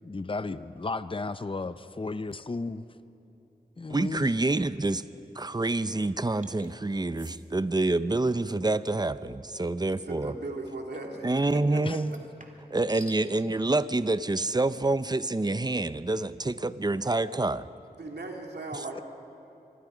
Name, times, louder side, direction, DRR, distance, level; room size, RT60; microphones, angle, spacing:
voice 1, 0.0-2.9 3.8-4.3 11.8-12.0 18.9-19.0, left 3 dB, 30° left, 13 dB, 0.6 m, -34 dB
voice 2, 3.9-5.0 5.4-10.3 11.2-12.2 12.7-17.7 18.7-18.8, right 2 dB, 25° right, 14 dB, 0.6 m, -27 dB
sound 1, 6.4-6.7 7.1-7.4 9.9-10.1 12.0-13.2, right 1 dB, 50° right, 2.1 m, -49 dB
voice 3, 10.0-11.3 11.5-11.8 12.1-12.2 18.0-19.0, right 2 dB, 85° right, 1 dB, 2.6 m, -37 dB
25.5 x 21.5 x 5.1 m, 2.8 s
wide cardioid pair, 60°, 17 cm